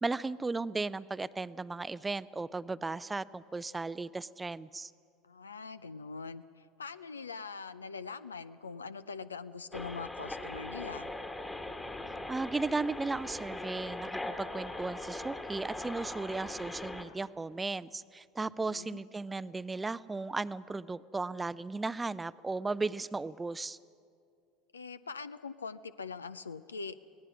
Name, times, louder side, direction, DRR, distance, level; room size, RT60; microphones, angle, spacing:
voice 1, 0.0-4.9 12.3-23.8, right 3 dB, 15° right, 17 dB, 0.5 m, -36 dB
voice 2, 5.2-11.1 18.6-19.0 24.7-27.0, left 5 dB, 85° left, 14 dB, 0.4 m, -43 dB
sound 1, 9.7-17.0, left 2 dB, 10° left, 1.5 m, -40 dB
25.0 x 18.0 x 5.9 m, 2.3 s
figure-of-eight pair, 70°, 0 cm